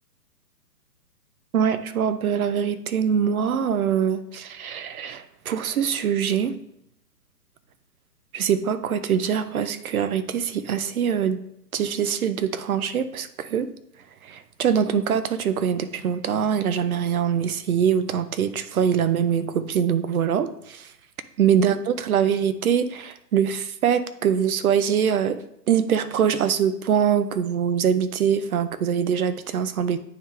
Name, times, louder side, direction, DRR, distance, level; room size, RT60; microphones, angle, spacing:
voice 1, 1.5-6.6 8.3-11.4 11.7-13.7 14.2-20.9 21.4-25.4 25.7-30.0, right 8 dB, 60° right, 13 dB, 0.7 m, -23 dB
9.2 x 3.6 x 3.1 m, 0.76 s
hypercardioid pair, 150°, 49 cm